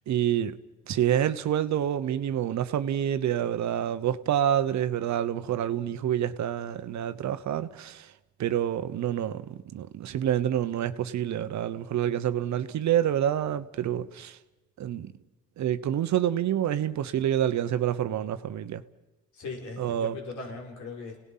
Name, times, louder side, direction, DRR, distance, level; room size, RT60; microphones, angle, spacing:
voice 1, 0.1-0.6 0.9-8.1 8.4-14.4 14.8-15.1 15.6-18.8 19.8-20.2, right 10 dB, 65° right, 1.0 m, -27 dB
voice 2, 19.3-21.2, left 3 dB, 75° left, 5.7 m, -39 dB
30.0 x 18.0 x 5.7 m
cardioid pair, 90°, 30 cm